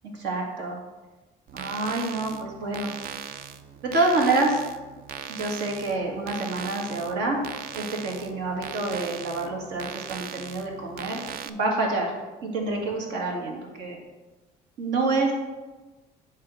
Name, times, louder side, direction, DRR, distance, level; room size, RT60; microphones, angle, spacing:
voice 1, 0.1-0.8 1.5-2.9 3.8-4.6 5.3-7.4 7.7-12.1 12.4-14.0 14.8-15.3, right 2 dB, 85° right, -1 dB, 2.0 m, -27 dB
sound 1, 1.5-11.5, right 9 dB, 60° right, 0.5 m, -39 dB
8.5 x 3.5 x 6.3 m, 1.2 s
cardioid pair, 110°, 17 cm